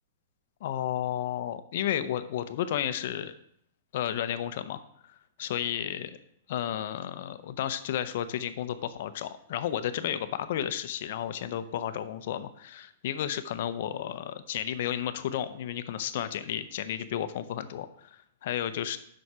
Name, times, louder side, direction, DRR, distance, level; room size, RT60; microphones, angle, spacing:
voice 1, 0.6-3.3 3.9-4.8 5.1-6.1 6.5-19.0, left 10 dB, 50° left, 11 dB, 0.6 m, -32 dB
7.7 x 5.5 x 4.7 m, 0.70 s
supercardioid pair, 170°, 0 cm